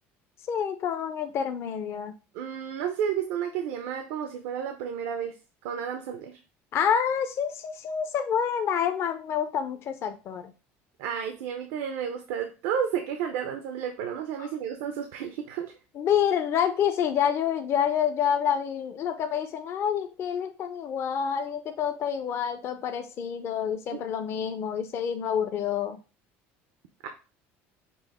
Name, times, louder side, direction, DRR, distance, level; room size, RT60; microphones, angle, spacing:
voice 1, 0.5-2.1 6.7-10.5 16.0-26.0, left 8 dB, 50° left, 7 dB, 0.5 m, -28 dB
voice 2, 2.3-5.3 5.6-6.4 11.0-15.7 23.9-24.0 27.0-27.1, right 8 dB, 90° right, 5 dB, 0.6 m, -31 dB
5.3 x 2.0 x 4.1 m, 0.32 s
cardioid pair, 120°, 6 cm